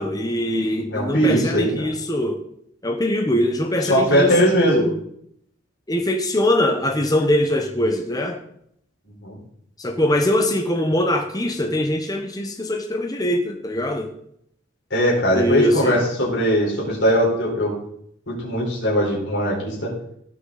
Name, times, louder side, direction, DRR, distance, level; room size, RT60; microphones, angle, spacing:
voice 1, 0.0-2.4 2.8-4.9 5.9-8.4 9.8-14.1 15.3-16.0, left 1 dB, 20° left, 3 dB, 1.1 m, -22 dB
voice 2, 0.9-1.7 3.9-4.8 9.2-9.4 14.9-17.7 18.3-19.9, equal, 70° left, -4 dB, 4.5 m, -20 dB
17.0 x 6.2 x 4.1 m, 0.70 s
head